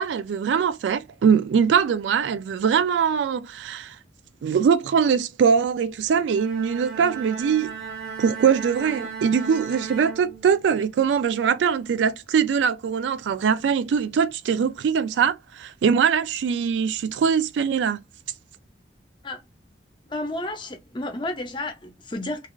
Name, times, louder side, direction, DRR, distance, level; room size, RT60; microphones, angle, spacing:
voice 1, 0.0-4.0 4.4-7.7 8.2-18.0, right 6 dB, 85° right, 0.3 m, -22 dB
Bowed string instrument, 6.2-10.9, right 6 dB, 60° right, 0.8 m, -36 dB
voice 2, 20.1-22.5, left 2 dB, 25° left, 0.6 m, -31 dB
3.1 x 2.4 x 2.3 m
head